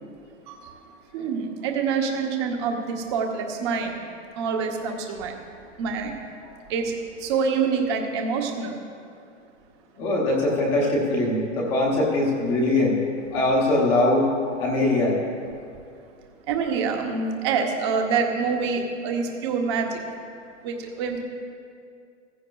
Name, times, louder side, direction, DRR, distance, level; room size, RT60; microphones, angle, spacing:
voice 1, 0.5-0.8 1.1-4.0 4.3-5.3 5.8-6.2 6.7-8.7 16.5-20.0 20.6-21.2, right 5 dB, 20° right, 3 dB, 0.8 m, -26 dB
voice 2, 10.0-13.0 13.3-14.3 14.6-15.2, left 2 dB, 15° left, -3 dB, 0.8 m, -22 dB
16.0 x 15.0 x 2.3 m, 2.4 s
hypercardioid pair, 175°, 37 cm